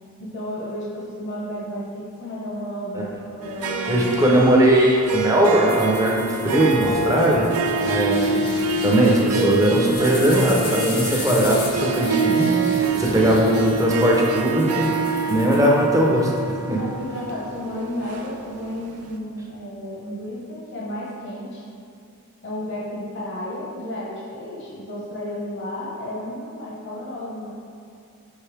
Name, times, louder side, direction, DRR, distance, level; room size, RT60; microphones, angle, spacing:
voice 1, 0.2-4.2 13.0-13.2 16.6-21.6 22.4-27.5, left 1 dB, 55° left, -6 dB, 1.2 m, -32 dB
Harp, 3.4-18.8, right 3 dB, 90° right, 0.5 m, -26 dB
voice 2, 3.9-7.5 7.8-8.4 8.8-12.5 13.0-14.9 15.3-16.3 16.7-16.8, right 1 dB, 15° right, -2 dB, 0.7 m, -19 dB
sound 1, 5.7-16.2, left 2 dB, 80° left, 1.4 m, -35 dB
5.9 x 5.4 x 3.4 m, 2.4 s
head